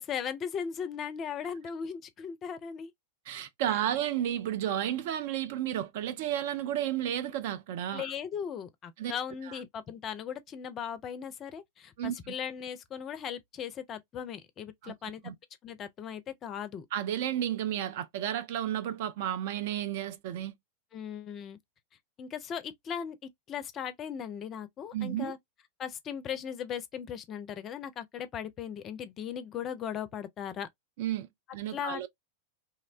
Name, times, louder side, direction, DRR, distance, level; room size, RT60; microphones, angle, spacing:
voice 1, 0.0-2.9 7.9-15.3 15.6-16.9 20.9-21.6 22.2-25.4 25.8-30.7 31.7-32.1, left 8 dB, 30° left, 0.4 m, -38 dB
voice 2, 3.3-8.1 9.0-9.2 9.5-9.6 12.0-12.3 14.8-14.9 15.2-15.3 16.9-20.6 24.9-25.3 31.0-32.1, right 11 dB, 50° right, 0.4 m, -32 dB
2.8 x 2.0 x 2.4 m
figure-of-eight pair, 90°, 0 cm